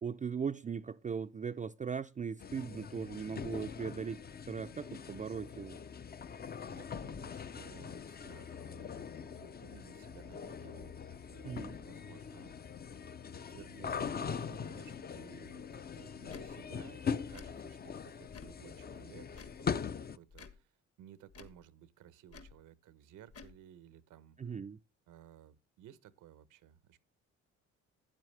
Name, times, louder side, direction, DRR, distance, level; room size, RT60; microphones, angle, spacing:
voice 1, 0.0-4.2 4.5-5.8 11.4-11.8 24.4-24.8, right 6 dB, 25° right, 0.5 m, -39 dB
sound 1, 2.4-20.2, left 6 dB, 30° left, 0.6 m, -42 dB
voice 2, 6.7-12.8 13.3-24.5 25.1-27.0, right 11 dB, 85° right, 1.0 m, -57 dB
Tick / Tick-tock, 16.3-16.5 17.3-17.5 18.3-18.6 19.3-19.6 20.3-20.6 21.3-21.6 22.3-22.6 23.3-23.6, left 5 dB, 50° left, 1.6 m, -52 dB
12.5 x 8.9 x 3.2 m
cardioid pair, 90°, 30 cm